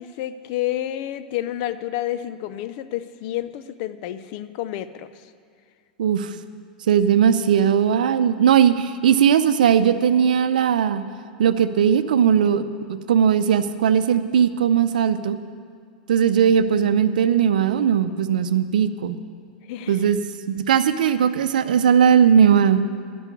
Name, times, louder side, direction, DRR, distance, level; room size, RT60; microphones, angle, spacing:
voice 1, 0.0-5.1 19.7-20.1, left 13 dB, 55° left, 13 dB, 0.6 m, -29 dB
voice 2, 6.0-6.3 6.9-11.0 11.4-12.6 13.1-15.4 16.1-19.2 19.9-20.2 20.5-22.8, right 8 dB, 75° right, 12 dB, 0.6 m, -18 dB
12.5 x 6.3 x 9.7 m, 2.1 s
hypercardioid pair, 90°, 5 cm